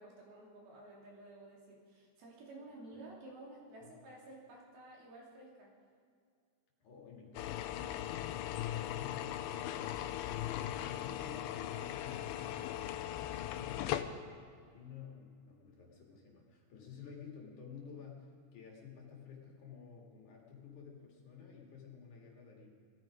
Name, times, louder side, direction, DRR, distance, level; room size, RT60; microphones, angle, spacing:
voice 1, 0.0-5.7, right 2 dB, 80° right, -3 dB, 5.0 m, -53 dB
voice 2, 6.8-8.1 8.4-10.0 10.3-22.7, left 6 dB, 55° left, -1 dB, 3.5 m, -52 dB
sound 1, 7.4-14.0, left 12 dB, 85° left, 2.5 m, -39 dB
19.5 x 14.0 x 5.1 m, 2.2 s
omnidirectional pair, 4.3 m